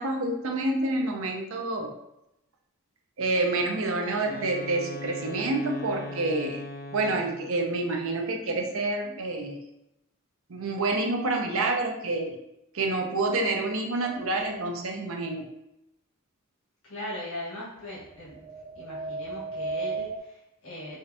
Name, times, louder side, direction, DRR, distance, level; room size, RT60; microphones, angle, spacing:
voice 1, 0.0-1.9 3.2-6.6 6.9-9.6 10.5-12.3 12.7-15.5, right 2 dB, 65° right, 2 dB, 0.6 m, -28 dB
Wind instrument woodwind instrument, 3.9-7.6, left 1 dB, 45° left, 0.5 m, -39 dB
sound 1, 14.0-14.7 18.0-20.2, right 3 dB, 30° right, 0.3 m, -35 dB
voice 2, 16.8-18.4 18.7-21.0, left 1 dB, 75° left, -8 dB, 1.4 m, -39 dB
4.9 x 2.5 x 2.7 m, 0.86 s
head